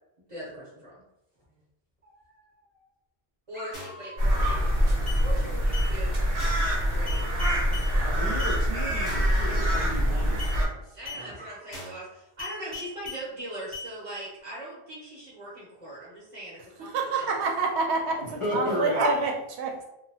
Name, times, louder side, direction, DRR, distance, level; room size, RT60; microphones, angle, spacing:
voice 1, 0.3-1.0 1.5-1.6 3.5-6.2 6.8-7.5 10.9-17.5, right 1 dB, 35° right, -7 dB, 0.8 m, -41 dB
Dog, 2.0-2.9 3.5-5.2 6.0-8.1 9.0-10.9 11.4-11.8, right 1 dB, 10° right, 0.5 m, -50 dB
sound 1, 3.7-4.0 4.4-4.7 5.1-5.2 5.7-5.9 6.4-6.7 7.1-7.9 8.4-8.6 9.1-9.4 9.7-10.0 10.4-10.6 11.1-11.2 11.7-12.0 12.4-13.2 13.7-13.9, left 3 dB, 25° left, 0.9 m, -39 dB
sound 2, 4.2-10.7, equal, 60° right, 1.0 m, -25 dB
voice 2, 8.0-11.4 18.2-19.3, equal, 40° left, -5 dB, 0.5 m, -34 dB
voice 3, 16.9-19.3 19.6-19.8, right 3 dB, 85° right, 1 dB, 0.9 m, -27 dB
2.8 x 2.1 x 2.7 m, 0.85 s
omnidirectional pair, 1.1 m